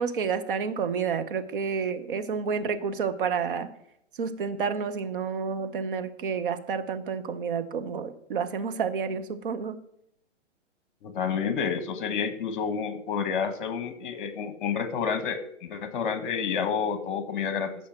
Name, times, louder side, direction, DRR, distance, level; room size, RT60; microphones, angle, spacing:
voice 1, 0.0-3.7 4.2-9.8, right 6 dB, 45° right, 10 dB, 0.9 m, -30 dB
voice 2, 11.0-17.7, left 6 dB, 40° left, 11 dB, 1.4 m, -29 dB
14.5 x 5.7 x 6.0 m, 0.74 s
hypercardioid pair, 145°, 37 cm